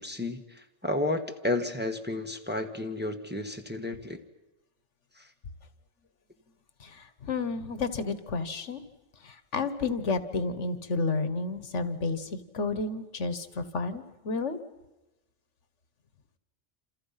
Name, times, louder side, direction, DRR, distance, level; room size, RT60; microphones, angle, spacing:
voice 1, 0.0-4.2 5.2-5.3, left 2 dB, 10° right, 4 dB, 1.4 m, -32 dB
voice 2, 6.8-8.8 9.2-14.6, left 3 dB, 70° left, 11 dB, 1.6 m, -31 dB
28.0 x 28.0 x 5.8 m, 1.0 s
omnidirectional pair, 1.3 m